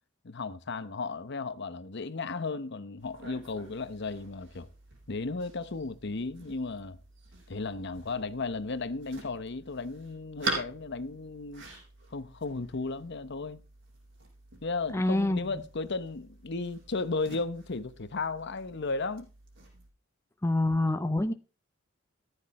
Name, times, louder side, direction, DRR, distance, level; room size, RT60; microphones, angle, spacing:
voice 1, 0.2-4.7 5.1-7.0 7.5-11.6 12.1-13.6 14.6-19.3, left 3 dB, 55° left, 0.9 m, -35 dB
sound 1, 3.0-19.9, right 3 dB, 65° right, 5.9 m, -44 dB
voice 2, 14.9-15.4 20.4-21.3, left 1 dB, 15° left, 0.6 m, -26 dB
14.0 x 9.8 x 4.1 m
head